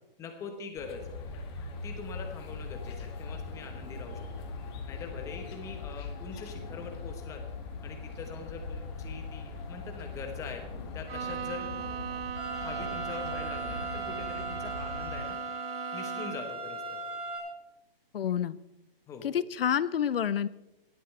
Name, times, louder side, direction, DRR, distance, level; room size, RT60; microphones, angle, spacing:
voice 1, 0.2-1.1 1.8-4.5 4.9-7.4 7.8-10.6 10.9-11.7 12.5-15.4 15.9-17.0 19.1-19.3, left 4 dB, 10° left, 5 dB, 1.2 m, -43 dB
sound 1, 0.7-15.2, left 4 dB, 25° left, 1.7 m, -41 dB
Bowed string instrument, 11.1-16.6, right 8 dB, 75° right, 0.6 m, -39 dB
sound 2, 12.4-17.4, right 3 dB, 5° right, 3.5 m, -38 dB
voice 2, 18.1-18.6 19.2-20.5, left 9 dB, 70° left, 18 dB, 0.7 m, -28 dB
17.5 x 12.5 x 3.3 m, 0.92 s
hypercardioid pair, 160°, 30 cm